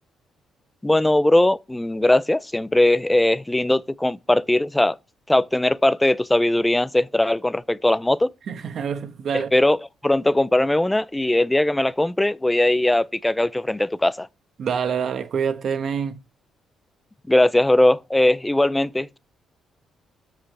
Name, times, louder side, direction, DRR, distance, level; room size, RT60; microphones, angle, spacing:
voice 1, 0.8-5.0 5.3-8.3 9.3-14.3 17.3-19.2, left 1 dB, 10° left, 0.5 m, -20 dB
voice 2, 8.5-9.5 14.6-16.2, right 7 dB, 60° right, 1.2 m, -26 dB
8.3 x 7.5 x 3.3 m
cardioid pair, 90°, 0 cm